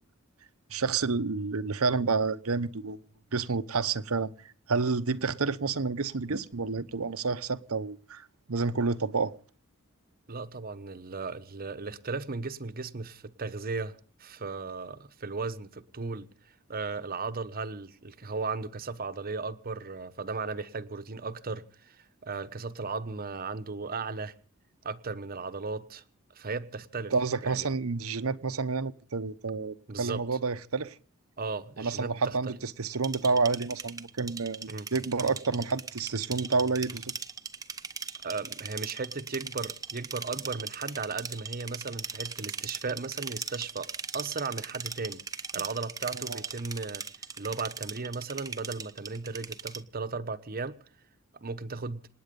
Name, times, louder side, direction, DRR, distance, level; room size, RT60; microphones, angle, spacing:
voice 1, 0.7-3.0 3.3-4.3 4.7-9.3 27.1-31.0 31.8-37.2 46.1-46.4, right 4 dB, 70° right, 0.9 m, -29 dB
voice 2, 10.3-16.3 16.7-24.3 24.8-26.0 26.3-27.1 27.4-27.7 29.9-30.2 31.4-32.5 34.7-34.9 38.2-43.9 44.1-45.2 45.5-47.0 47.4-50.8 51.4-52.0, right 4 dB, 45° right, 1.1 m, -36 dB
sound 1, 32.9-49.8, right 5 dB, 15° right, 0.8 m, -39 dB
27.5 x 9.5 x 5.3 m
head